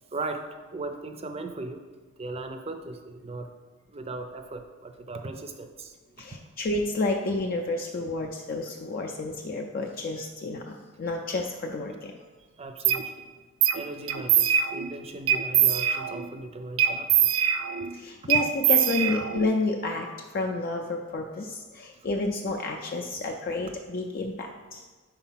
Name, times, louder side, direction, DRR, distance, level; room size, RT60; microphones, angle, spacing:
voice 1, 0.1-1.8 2.2-3.5 3.9-6.0 12.6-13.3 13.7-17.3, right 2 dB, 30° right, 6 dB, 0.5 m, -38 dB
voice 2, 6.2-12.2 17.9-24.8, left 2 dB, 45° left, 2 dB, 0.4 m, -30 dB
sound 1, 12.8-13.0 13.6-13.8 14.1-14.9 15.3-16.3 16.8-17.9 18.3-19.5, right 10 dB, 85° right, 0.4 m, -23 dB
5.0 x 4.5 x 5.6 m, 1.3 s
head